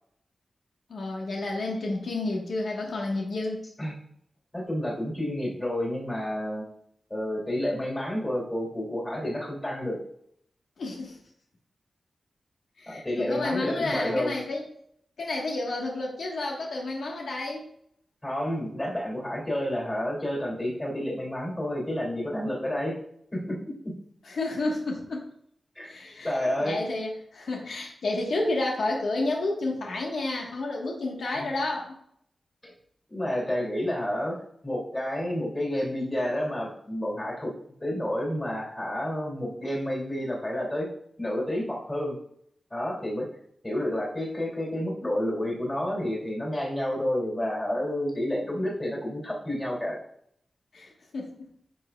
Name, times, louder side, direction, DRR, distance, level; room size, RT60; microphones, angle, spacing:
voice 1, 0.9-3.6 10.8-11.2 12.8-14.6 15.2-17.7 24.3-25.3 25.8-32.0 50.7-51.5, left 2 dB, 85° left, -1 dB, 1.4 m, -30 dB
voice 2, 4.5-6.6 7.1-10.0 12.9-14.4 18.2-23.0 23.3-23.6 23.8-23.9 25.7-26.0 26.2-26.8 31.4-31.5 32.6-32.7 33.1-37.5 37.8-40.9 41.2-42.2 42.7-43.3 43.6-50.0, left 1 dB, 20° left, -3 dB, 2.7 m, -30 dB
10.0 x 6.1 x 2.3 m, 0.69 s
wide cardioid pair, 120°, 0 cm